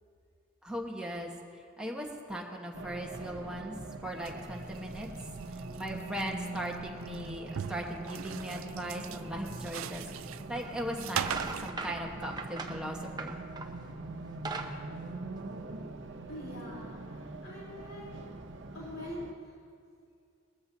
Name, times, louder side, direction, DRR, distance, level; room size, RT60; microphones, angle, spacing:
voice 1, 0.6-1.3 1.8-3.8 4.0-5.1 5.8-10.0 10.5-13.4, equal, 5° right, -1 dB, 1.3 m, -38 dB
Race car auto racing, 2.7-19.3, right 2 dB, 60° right, 0.8 m, -43 dB
sound 1, 4.1-11.7, right 9 dB, 85° right, 0.4 m, -41 dB
sound 2, 10.5-10.7 11.1-13.8 14.2-15.9, right 4 dB, 20° right, 0.7 m, -40 dB
voice 2, 16.3-18.3 18.7-19.3, left 1 dB, 85° left, -6 dB, 3.8 m, -44 dB
20.0 x 13.5 x 2.8 m, 2.3 s
head